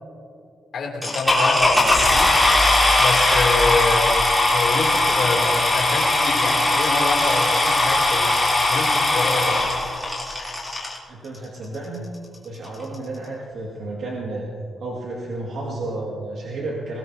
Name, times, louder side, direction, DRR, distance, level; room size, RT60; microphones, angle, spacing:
voice 1, 0.7-2.3 3.0-4.2 4.5-8.4 8.7-9.7, left 3 dB, 60° left, 0 dB, 2.8 m, -26 dB
sound 1, 1.0-11.0 11.7-11.8 12.3-12.4 12.6-12.9, left 2 dB, ahead, 3.2 m, -19 dB
voice 2, 11.1-12.1 12.4-14.5 14.8-17.0, right 2 dB, 65° right, -3 dB, 2.1 m, -31 dB
22.0 x 19.0 x 2.8 m, 2.4 s
wide cardioid pair, 160°, 0 cm